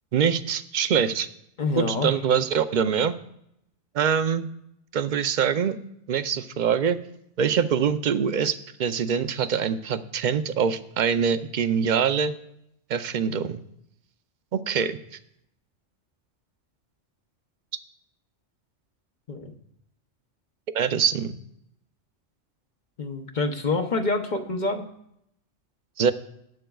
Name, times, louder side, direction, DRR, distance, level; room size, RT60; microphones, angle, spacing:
voice 1, 0.1-1.3 1.7-3.1 3.9-4.5 4.9-5.8 6.1-7.0 7.4-12.3 12.9-13.6 14.5-15.0 20.7-21.4 26.0-26.1, right 7 dB, 55° right, 11 dB, 0.5 m, -24 dB
voice 2, 1.6-2.2 19.3-19.5 23.0-24.9, left 3 dB, 45° left, 5 dB, 0.8 m, -27 dB
18.5 x 8.8 x 2.3 m, 0.76 s
omnidirectional pair, 1.2 m